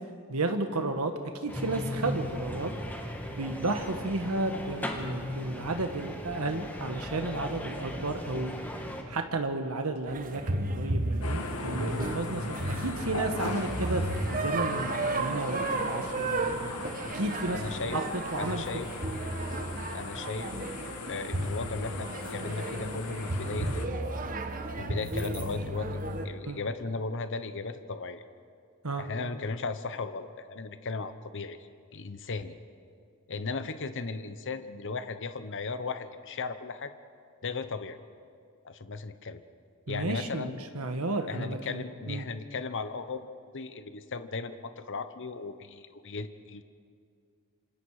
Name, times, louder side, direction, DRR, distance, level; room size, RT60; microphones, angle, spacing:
voice 1, 0.3-1.1 1.4-2.7 3.3-8.6 9.1-16.7 17.1-17.6 17.9-18.0 18.3-18.6 26.4-26.6 28.8-29.0 39.9-42.2, right 2 dB, 75° right, 6 dB, 1.5 m, -33 dB
sound 1, 1.5-9.0, left 1 dB, 10° left, 2.2 m, -37 dB
sound 2, 10.1-26.3, right 2 dB, 40° right, 1.4 m, -33 dB
sound 3, 11.2-23.9, left 3 dB, 90° left, 1.9 m, -39 dB
voice 2, 17.5-18.0 18.4-18.9 19.9-20.5 21.1-24.2 24.8-28.2 29.0-31.6 31.9-32.5 33.3-36.9 37.4-38.0 38.6-39.4 39.9-40.6 41.3-43.3 43.5-46.6, left 4 dB, 60° left, 10 dB, 0.9 m, -36 dB
27.5 x 26.5 x 4.9 m, 2.3 s
head